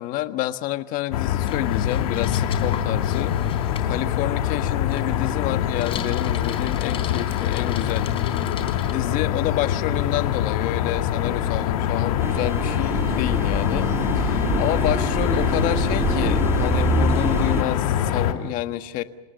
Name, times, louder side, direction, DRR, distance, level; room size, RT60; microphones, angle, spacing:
voice 1, 0.0-3.4 3.8-8.1 8.9-13.9 14.1-19.0, left 15 dB, 50° left, 10 dB, 1.5 m, -28 dB
sound 1, 1.1-18.3, left 10 dB, 85° left, 2.8 m, -24 dB
Bicycle, 1.4-8.9, left 8 dB, 30° left, 3.6 m, -40 dB
sound 2, 12.2-17.6, right 3 dB, 15° right, 2.6 m, -26 dB
28.5 x 18.0 x 9.3 m, 1.0 s
supercardioid pair, 140°, 18 cm